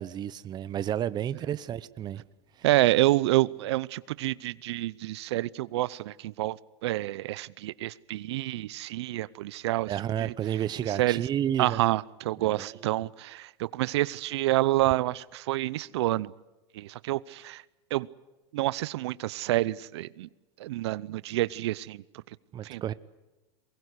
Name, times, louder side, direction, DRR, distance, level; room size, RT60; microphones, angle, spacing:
voice 1, 0.0-2.2 2.6-2.7 9.9-12.0 12.4-12.9 22.5-22.9, right 10 dB, 30° right, 0.9 m, -31 dB
voice 2, 2.6-9.9 10.2-10.3 11.0-11.3 11.6-16.3 16.7-17.6 17.9-18.1 18.5-20.3 20.6-22.0 22.6-22.9, right 17 dB, 75° right, 0.7 m, -28 dB
23.0 x 21.0 x 8.2 m
supercardioid pair, 120°, 14 cm